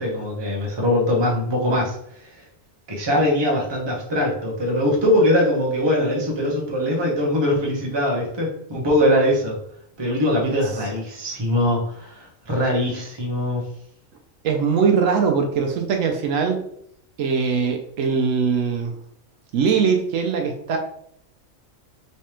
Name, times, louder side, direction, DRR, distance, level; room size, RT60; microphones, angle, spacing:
voice 1, 0.0-1.9 2.9-9.6 10.0-13.6, left 1 dB, 25° right, -2 dB, 0.8 m, -21 dB
voice 2, 14.4-16.6 17.2-19.0 19.5-20.8, right 6 dB, 75° right, 3 dB, 0.9 m, -21 dB
3.3 x 3.2 x 2.9 m, 0.69 s
omnidirectional pair, 1.4 m